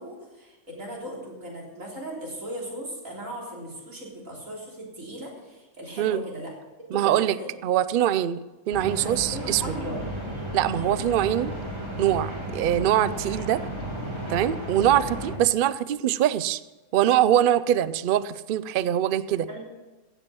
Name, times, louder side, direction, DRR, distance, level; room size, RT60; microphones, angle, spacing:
voice 1, 0.0-6.5 6.9-7.5 8.9-10.1 19.5-19.6, right 1 dB, 65° right, -2 dB, 3.9 m, -38 dB
voice 2, 6.9-7.4 7.6-8.4 8.7-9.8 10.5-11.5 12.0-13.6 14.3-16.6 16.9-19.5, right 11 dB, 90° right, 16 dB, 0.4 m, -23 dB
sound 1, 8.7-15.4, right 1 dB, 20° right, 2.2 m, -33 dB
16.0 x 7.8 x 6.2 m, 1.2 s
omnidirectional pair, 1.5 m